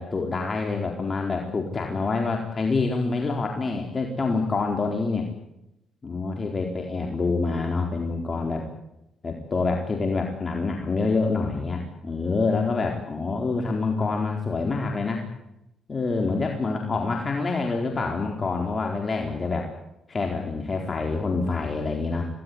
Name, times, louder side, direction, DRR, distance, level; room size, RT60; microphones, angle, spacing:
voice 1, 0.0-5.3 6.0-8.6 9.2-15.3 15.9-19.7 20.1-22.2, left 3 dB, 35° left, 2 dB, 4.3 m, -26 dB
26.5 x 18.5 x 9.8 m, 0.87 s
cardioid pair, 90°, 0 cm